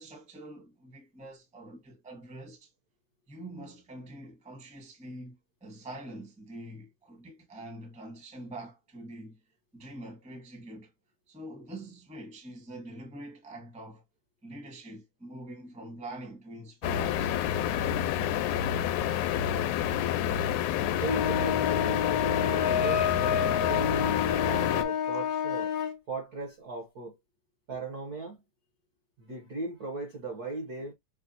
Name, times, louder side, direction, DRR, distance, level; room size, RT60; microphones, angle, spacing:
voice 1, 0.0-2.7 3.3-9.4 9.7-10.9 11.3-14.0 14.4-17.4, right 1 dB, 5° right, 0.7 m, -45 dB
sound 1, 16.8-24.8, left 10 dB, 85° left, 2.0 m, -28 dB
sound 2, 21.0-26.0, left 8 dB, 65° left, 1.0 m, -29 dB
voice 2, 21.0-23.1 23.6-25.7 26.1-27.2 27.7-28.4 29.2-30.9, right 3 dB, 55° right, 1.0 m, -38 dB
6.5 x 2.4 x 2.7 m
omnidirectional pair, 3.5 m